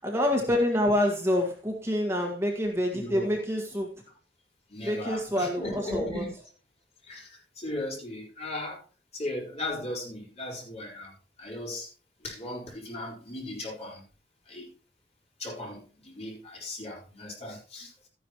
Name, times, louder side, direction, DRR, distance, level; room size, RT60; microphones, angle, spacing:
voice 1, 0.0-4.0 4.8-6.2, left 1 dB, 15° right, 1.7 m, -27 dB
voice 2, 2.9-3.3 4.7-6.3 7.0-8.8 9.1-11.1 11.4-11.9 12.2-14.0 14.5-14.7 15.4-18.1, left 1 dB, 40° left, 4.7 m, -37 dB
13.0 x 10.5 x 3.0 m
head